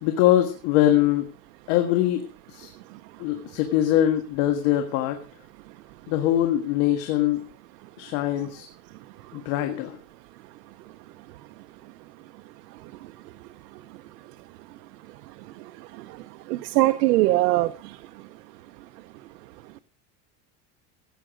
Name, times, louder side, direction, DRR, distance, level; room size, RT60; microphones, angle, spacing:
voice 1, 0.0-1.3 1.7-2.2 2.5-2.7 3.2-5.2 6.1-7.5 8.0-8.7 9.3-10.0, left 12 dB, 60° left, 6 dB, 1.8 m, -22 dB
voice 2, 16.5-17.7, right 17 dB, 90° right, 10 dB, 0.9 m, -20 dB
16.0 x 8.9 x 5.1 m, 0.38 s
supercardioid pair, 145°, 47 cm